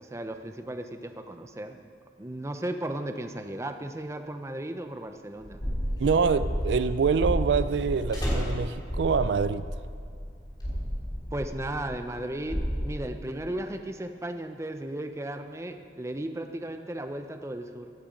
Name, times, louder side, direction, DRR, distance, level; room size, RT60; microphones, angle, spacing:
voice 1, 0.0-1.8 2.2-5.6 11.3-17.9, right 1 dB, 15° right, 7 dB, 0.6 m, -35 dB
Slam, 5.2-9.9 10.2-10.6, equal, 25° left, 3.4 m, -35 dB
sound 1, 5.4-12.8, equal, 45° left, 3.7 m, -32 dB
voice 2, 6.0-9.6, right 5 dB, 75° right, 14 dB, 0.4 m, -25 dB
16.0 x 8.6 x 5.2 m, 2.2 s
head